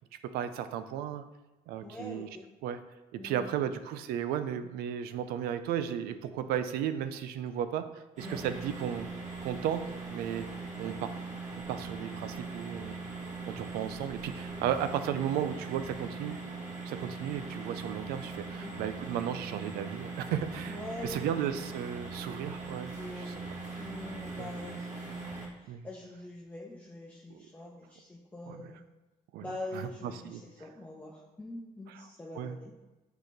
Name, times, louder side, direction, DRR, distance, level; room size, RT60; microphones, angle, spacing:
voice 1, 0.3-1.2 1.7-2.3 2.6-2.8 3.1-9.1 9.4-10.5 10.8-11.1 11.7-13.0 13.5-16.4 16.8-20.8 21.0-22.9 23.2-23.4 24.4-24.5 25.7-25.9 27.3-27.4 28.5-28.6 29.3-29.9 30.2-30.4 31.9-32.0 32.4-32.6, right 9 dB, 90° right, 11 dB, 0.5 m, -34 dB
voice 2, 1.8-2.5 3.2-3.7 8.2-8.4 13.6-13.8 18.5-18.7 20.7-21.4 22.9-28.8 29.4-32.7, left 2 dB, 10° left, -4 dB, 0.9 m, -44 dB
sound 1, 8.2-25.5, right 3 dB, 50° right, 2.0 m, -41 dB
6.5 x 4.9 x 3.9 m, 1.1 s
cardioid pair, 90°, 15 cm